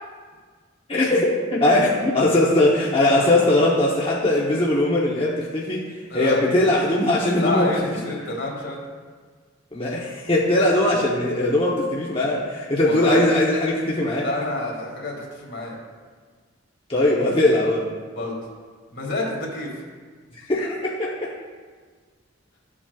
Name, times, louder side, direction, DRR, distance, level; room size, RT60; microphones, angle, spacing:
voice 1, 0.9-5.9 6.1-8.0 9.7-14.3 16.9-17.9 20.5-21.3, left 1 dB, 30° left, -4 dB, 0.9 m, -20 dB
voice 2, 6.1-6.4 7.4-8.8 12.8-13.3 14.2-15.7 18.2-18.4 18.9-19.7, left 2 dB, 65° left, -2 dB, 2.2 m, -28 dB
13.5 x 7.4 x 2.3 m, 1.5 s
head